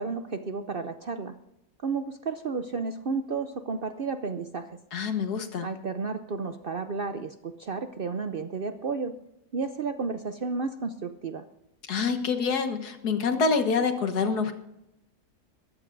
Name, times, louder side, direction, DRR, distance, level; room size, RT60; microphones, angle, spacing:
voice 1, 0.0-1.4 1.8-4.8 5.6-9.1 9.5-11.4, right 4 dB, 55° right, 9 dB, 0.6 m, -32 dB
voice 2, 4.9-5.7 11.9-14.5, left 5 dB, 85° left, 7 dB, 1.9 m, -26 dB
21.5 x 14.5 x 2.6 m, 0.86 s
omnidirectional pair, 1.6 m